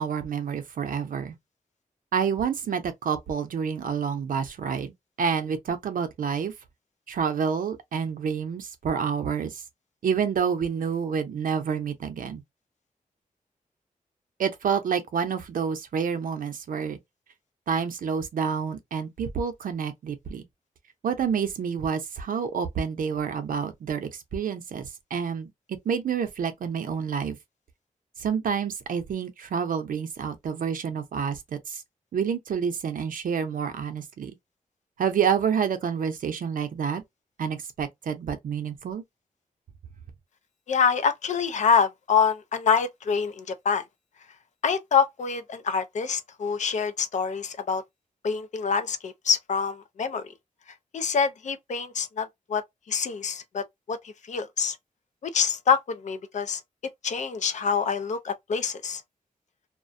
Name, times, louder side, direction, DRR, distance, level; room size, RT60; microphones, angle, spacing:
voice 1, 0.0-1.3 2.1-4.9 5.2-6.5 7.1-9.6 10.0-12.4 14.4-17.0 17.7-20.5 21.0-25.5 25.9-27.4 28.2-31.8 32.1-34.3 35.0-37.0 37.4-39.0, right 7 dB, 80° right, 0.6 m, -28 dB
voice 2, 40.7-43.8 44.6-47.8 48.2-50.2 50.9-52.6 52.9-54.8 55.2-56.6 57.0-59.0, left 6 dB, 60° left, 0.4 m, -26 dB
2.4 x 2.1 x 2.5 m
wide cardioid pair, 175°, 14 cm